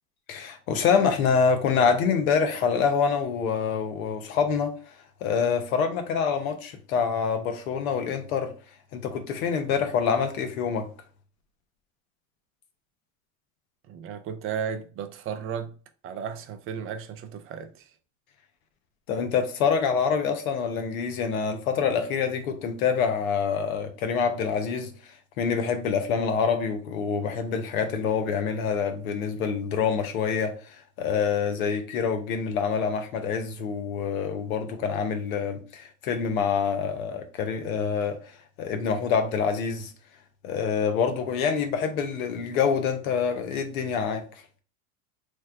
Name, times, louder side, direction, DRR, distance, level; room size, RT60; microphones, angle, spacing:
voice 1, 0.3-4.9 5.2-8.5 8.9-10.9 19.1-39.9 40.4-44.2, left 6 dB, 85° left, 0.8 m, -26 dB
voice 2, 13.9-15.8 16.0-17.9, right 7 dB, 35° right, 0.5 m, -34 dB
3.2 x 2.1 x 3.5 m
supercardioid pair, 105°, 41 cm